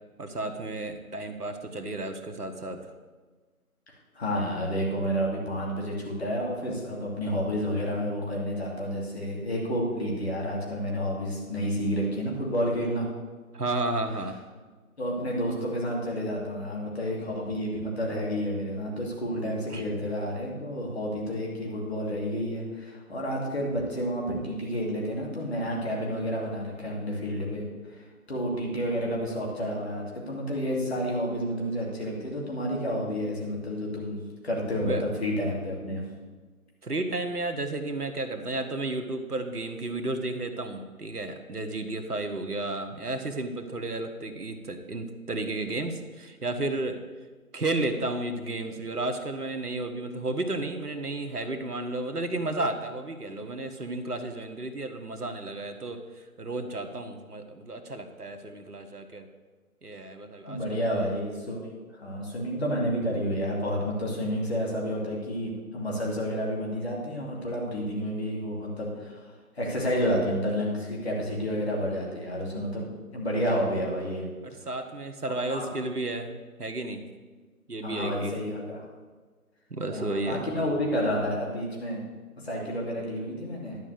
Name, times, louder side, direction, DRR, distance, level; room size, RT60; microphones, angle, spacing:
voice 1, 0.2-2.9 13.5-14.4 19.7-19.8 34.8-35.1 36.8-47.0 47.5-59.3 59.8-61.1 74.4-76.3 76.6-77.1 77.7-78.4 79.7-80.5, right 2 dB, 85° right, 6 dB, 1.4 m, -32 dB
voice 2, 3.9-13.1 15.0-34.2 34.4-36.0 60.4-72.8 73.1-74.3 74.6-74.7 75.5-75.7 77.8-78.8 79.9-82.0 82.4-83.8, equal, 45° left, -2 dB, 2.8 m, -30 dB
11.0 x 4.9 x 8.0 m, 1.4 s
figure-of-eight pair, 160°, 45 cm